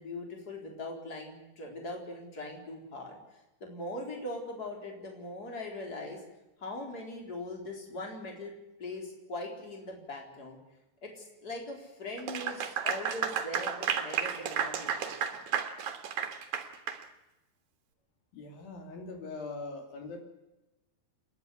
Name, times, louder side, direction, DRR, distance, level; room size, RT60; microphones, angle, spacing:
voice 1, 0.0-6.2 6.6-8.5 8.8-10.6 11.0-15.4, left 2 dB, 25° left, 1 dB, 4.4 m, -41 dB
Clapping / Applause, 12.2-17.0, right 8 dB, 60° right, 2.8 m, -32 dB
voice 2, 18.3-20.2, left 3 dB, 80° left, 4 dB, 4.3 m, -41 dB
29.0 x 11.0 x 9.7 m, 0.99 s
omnidirectional pair, 4.1 m